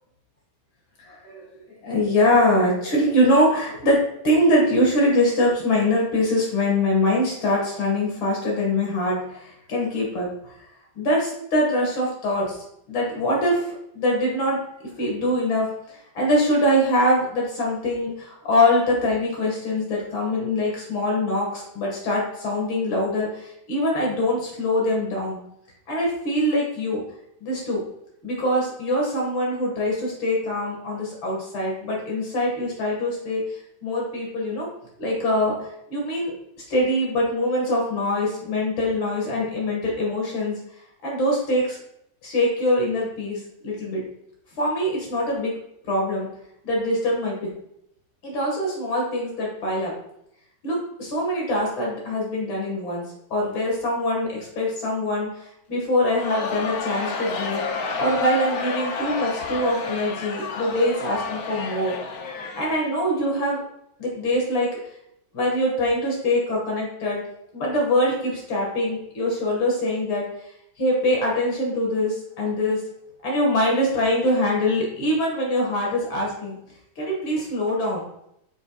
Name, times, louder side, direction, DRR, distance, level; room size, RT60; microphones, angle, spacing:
voice 1, 1.1-1.5 1.8-10.6 11.0-12.6 12.9-14.6 15.0-25.4 25.9-27.0 27.4-27.8 28.2-33.4 33.8-34.7 35.0-36.3 36.7-40.6 41.0-41.8 42.2-44.0 44.6-45.5 45.9-46.3 46.6-47.5 48.2-49.9 50.6-55.3 55.7-57.6 58.0-61.9 62.5-63.6 64.0-64.7 65.3-67.2 67.5-70.3 70.8-72.8 73.2-76.6 77.0-78.0, left 1 dB, 90° left, -2 dB, 2.7 m, -23 dB
Crowd, 56.0-63.3, left 4 dB, 60° left, 1.1 m, -31 dB
9.6 x 6.5 x 2.4 m, 0.75 s
omnidirectional pair, 2.1 m